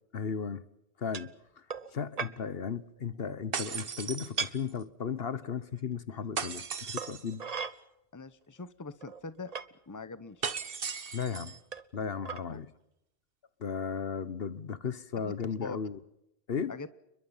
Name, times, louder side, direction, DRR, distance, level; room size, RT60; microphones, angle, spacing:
voice 1, 0.1-0.6 1.0-1.6 1.9-7.5 11.1-11.6 11.9-12.7 13.6-16.0 16.5-16.7, left 6 dB, 65° left, 1.3 m, -35 dB
sound 1, 1.1-1.3 1.7-1.9 2.2-2.4 3.8-4.0 4.4-4.5 5.8-5.9 7.0-7.7 8.6-8.7 9.0-9.7 10.5-10.6 11.7-12.0 12.2-12.4, right 5 dB, 40° right, 1.0 m, -37 dB
sound 2, 3.5-4.8 6.4-7.4 10.4-11.6, right 6 dB, 60° right, 1.4 m, -37 dB
voice 2, 8.1-9.5 9.9-10.5 12.5-12.6 15.2-15.3 15.6-15.8 16.7-16.9, left 3 dB, 20° left, 1.0 m, -43 dB
30.0 x 22.5 x 5.6 m
omnidirectional pair, 1.1 m